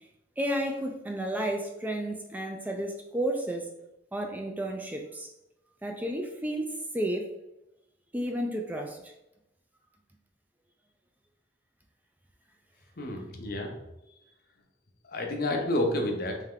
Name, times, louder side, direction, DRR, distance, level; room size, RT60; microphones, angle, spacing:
voice 1, 0.4-3.7 4.1-5.3 5.8-7.3 8.1-9.1, right 1 dB, 10° right, 2 dB, 0.4 m, -32 dB
voice 2, 13.0-13.7 14.1-14.2 15.0-16.4, left 1 dB, 55° left, 2 dB, 0.7 m, -30 dB
3.5 x 3.3 x 3.6 m, 0.90 s
head